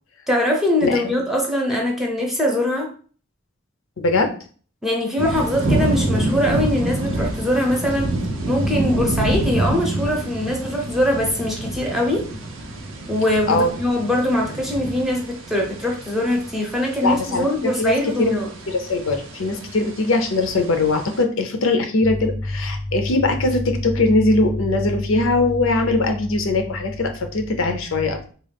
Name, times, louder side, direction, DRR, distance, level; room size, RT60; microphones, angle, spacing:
voice 1, 0.3-2.9 4.8-8.2 8.5-12.3 13.1-18.5, left 1 dB, ahead, -1 dB, 0.7 m, -22 dB
voice 2, 0.8-1.2 4.0-4.3 13.5-13.7 17.0-18.3 18.7-28.3, left 2 dB, 80° left, 6 dB, 0.6 m, -21 dB
sound 1, 5.2-21.2, right 1 dB, 80° right, 0.6 m, -27 dB
3.6 x 2.4 x 3.4 m, 0.42 s
head